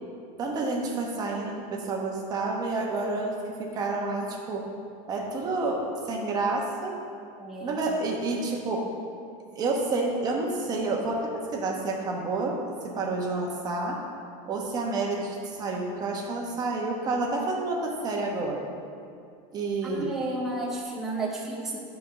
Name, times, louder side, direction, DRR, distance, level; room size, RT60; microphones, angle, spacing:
voice 1, 0.4-4.7 5.1-7.0 7.6-8.9 9.5-14.0 14.4-18.7 19.5-20.2, right 3 dB, 20° right, 0 dB, 1.1 m, -29 dB
voice 2, 7.4-7.8 19.8-21.8, right 2 dB, ahead, -4 dB, 0.7 m, -32 dB
9.5 x 4.6 x 6.3 m, 2.4 s
supercardioid pair, 175°, 17 cm